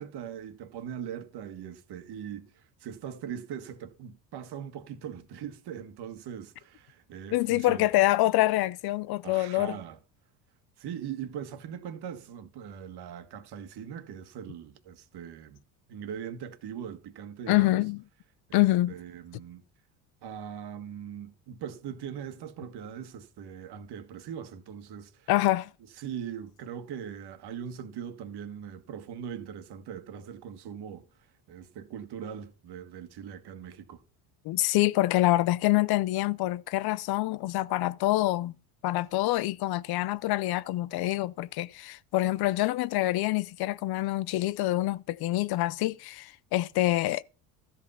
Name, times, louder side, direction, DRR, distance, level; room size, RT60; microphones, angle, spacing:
voice 1, 0.0-7.9 9.2-10.0 10.8-15.6 15.9-17.8 18.5-19.6 20.2-25.3 26.0-31.1 31.5-34.0, right 8 dB, 55° right, 1.7 m, -41 dB
voice 2, 7.3-9.8 17.5-18.0 18.5-18.9 25.3-25.7 34.4-38.5 38.8-47.2, left 17 dB, 55° left, 0.6 m, -26 dB
13.0 x 5.7 x 5.5 m
supercardioid pair, 85°, 46 cm